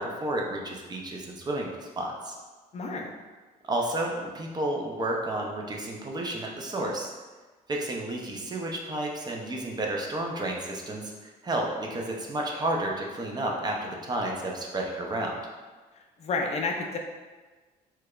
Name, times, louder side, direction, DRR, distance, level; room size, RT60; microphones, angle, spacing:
voice 1, 0.0-1.7 2.0-2.3 3.7-7.1 7.7-15.4, right 1 dB, 25° right, 0 dB, 0.5 m, -31 dB
voice 2, 2.7-3.1 16.2-17.0, left 3 dB, 40° left, 2 dB, 0.4 m, -30 dB
4.5 x 2.3 x 2.3 m, 1.3 s
cardioid pair, 110°, 17 cm